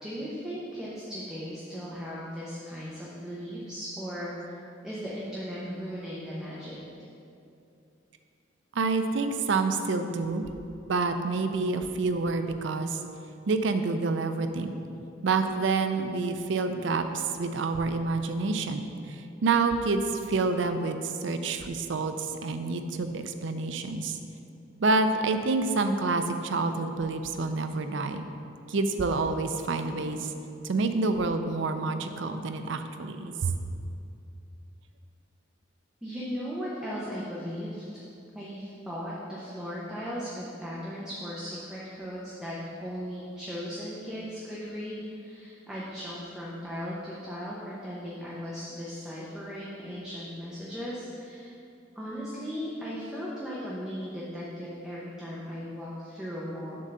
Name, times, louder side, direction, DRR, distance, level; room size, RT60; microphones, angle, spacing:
voice 1, 0.0-6.8 36.0-37.8 38.3-42.5 42.8-51.6 51.9-56.8, equal, 5° right, -8 dB, 0.8 m, -37 dB
voice 2, 8.7-10.4 10.9-13.0 13.5-14.8 15.2-24.2 24.8-28.2 28.7-30.3 30.6-33.5, right 3 dB, 70° right, 8 dB, 0.5 m, -28 dB
7.6 x 3.7 x 6.6 m, 2.6 s
head